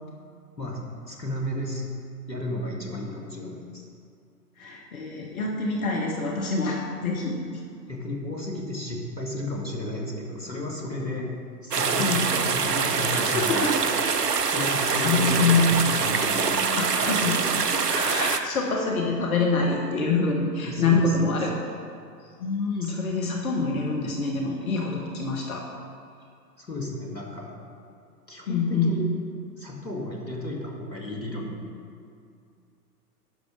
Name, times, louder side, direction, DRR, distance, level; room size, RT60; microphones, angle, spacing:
voice 1, 1.1-1.8 2.3-3.8 7.9-11.3 11.6-13.9 14.5-17.7 20.6-21.3 22.8-23.0 26.6-27.6 28.3-29.1 29.6-31.7, left 1 dB, 90° left, -1 dB, 2.1 m, -33 dB
voice 2, 4.6-7.6 12.0-12.2 13.1-13.8 15.0-15.7 16.1-16.2 16.8-17.4 17.7-21.6 22.4-25.6 28.5-29.0, left 4 dB, 55° left, 0 dB, 1.3 m, -26 dB
sound 1, 11.7-18.4, right 5 dB, 70° right, 0.8 m, -24 dB
10.5 x 6.6 x 5.0 m, 2.4 s
figure-of-eight pair, 115°, 49 cm